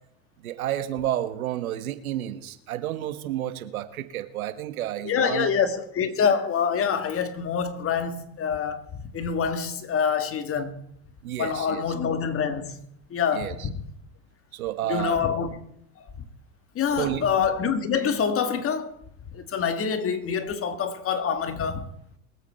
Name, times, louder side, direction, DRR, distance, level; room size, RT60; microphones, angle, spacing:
voice 1, 0.4-5.5 11.2-11.8 13.3-13.7 14.5-15.2 16.9-17.3, right 12 dB, 85° right, 1.4 m, -30 dB
voice 2, 5.0-8.9 9.1-10.8 11.4-12.8 13.1-13.8 14.9-15.6 16.8-19.0 19.3-21.9, left 6 dB, 30° left, 1.8 m, -26 dB
23.0 x 8.2 x 4.4 m
hypercardioid pair, 105°, 41 cm